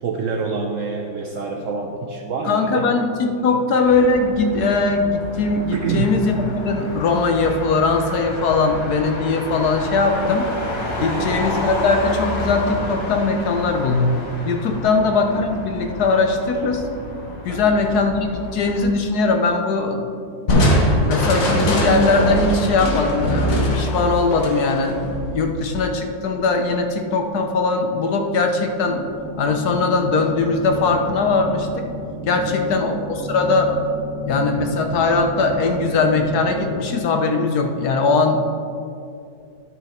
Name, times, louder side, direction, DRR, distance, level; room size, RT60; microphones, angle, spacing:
voice 1, 0.0-3.6 5.7-6.1 11.0-11.4 14.7-15.0 17.5-17.8 32.4-32.7, right 5 dB, 65° right, 2 dB, 0.8 m, -28 dB
voice 2, 2.5-10.5 11.0-14.2 14.4-16.8 17.4-20.1 21.0-29.0 29.4-31.9 32.3-33.7 34.2-38.4, left 3 dB, 65° left, 4 dB, 1.3 m, -20 dB
Motor vehicle (road), 3.8-18.8, left 1 dB, 90° left, 2.7 m, -30 dB
Crushing, 20.5-25.9, equal, 50° left, 1.6 m, -21 dB
sound 1, 28.8-36.8, left 1 dB, 40° right, 2.1 m, -32 dB
11.0 x 6.3 x 4.3 m, 2.4 s
omnidirectional pair, 1.9 m